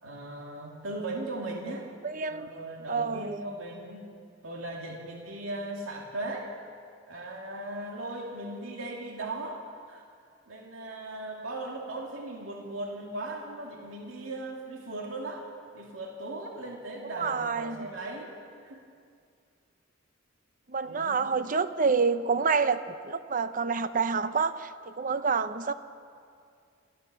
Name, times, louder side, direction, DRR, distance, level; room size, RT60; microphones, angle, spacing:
voice 1, 0.0-1.9 2.3-4.0 4.4-6.5 7.1-9.6 9.9-10.0 10.5-15.5 15.7-18.3 18.6-18.8 20.8-21.3, right 2 dB, 90° right, 0 dB, 2.6 m, -38 dB
voice 2, 2.0-2.5 2.9-3.4 17.2-17.9 20.7-25.7, right 5 dB, 45° right, 12 dB, 0.7 m, -28 dB
26.5 x 15.0 x 6.9 m, 2.3 s
head